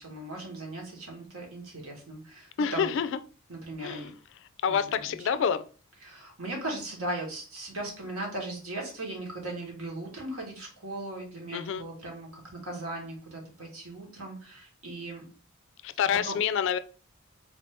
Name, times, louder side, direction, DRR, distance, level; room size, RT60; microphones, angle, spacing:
voice 1, 0.0-3.0 3.5-4.1 4.7-5.0 5.3-5.4 6.0-15.2 16.2-16.4, right 2 dB, 85° right, 1.6 m, -38 dB
voice 2, 2.6-3.2 3.8-4.1 4.6-5.6 11.5-11.8 15.8-16.8, left 7 dB, 60° left, 0.3 m, -27 dB
4.1 x 2.6 x 3.4 m
head